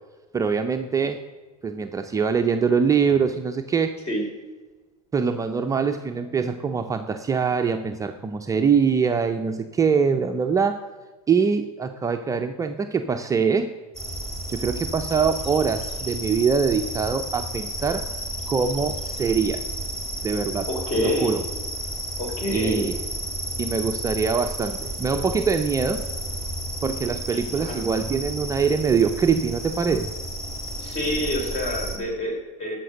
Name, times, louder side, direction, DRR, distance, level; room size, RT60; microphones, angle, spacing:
voice 1, 0.3-1.2 1.6-3.9 5.1-10.8 11.3-13.7 14.5-18.1 18.5-19.6 20.2-20.7 21.0-21.4 22.5-22.9 23.6-26.0 26.8-30.1, right 6 dB, 15° right, 5 dB, 0.6 m, -23 dB
sound 1, 13.9-32.0, right 1 dB, ahead, 2.2 m, -32 dB
voice 2, 20.7-21.3 22.2-22.9 27.3-27.9 30.8-32.8, equal, 35° left, 2 dB, 3.6 m, -27 dB
14.5 x 5.9 x 6.5 m, 1.3 s
hypercardioid pair, 100°, 20 cm